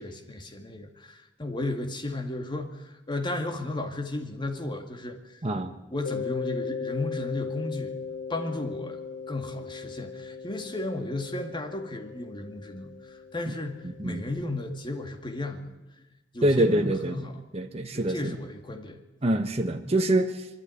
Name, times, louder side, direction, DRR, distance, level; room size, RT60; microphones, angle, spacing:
voice 1, 0.0-5.4 5.9-8.0 8.3-9.0 9.3-16.0 16.3-17.4 17.9-19.0, left 2 dB, 25° left, 4 dB, 2.0 m, -34 dB
voice 2, 5.4-5.7 13.8-14.2 16.4-18.4 19.2-20.5, right 1 dB, 35° right, 5 dB, 1.2 m, -26 dB
Mallet percussion, 6.1-14.7, left 5 dB, 45° left, 1.7 m, -38 dB
24.0 x 12.5 x 9.7 m, 1.1 s
head